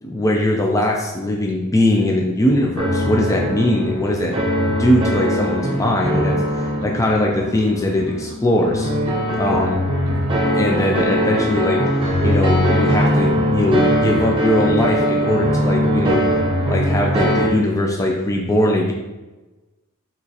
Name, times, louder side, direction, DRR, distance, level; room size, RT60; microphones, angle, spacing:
voice 1, 0.0-4.4 4.7-8.9 9.3-9.8 10.5-11.8 12.2-16.2 16.7-18.9, left 1 dB, 15° left, 0 dB, 0.4 m, -20 dB
sound 1, 2.7-4.3 4.6-8.3 8.6-12.3 12.6-16.3 16.6-18.0, right 3 dB, 80° right, 0.4 m, -37 dB
sound 2, 2.8-17.5, equal, 25° right, 0.7 m, -21 dB
5.8 x 3.0 x 2.8 m, 1.1 s
head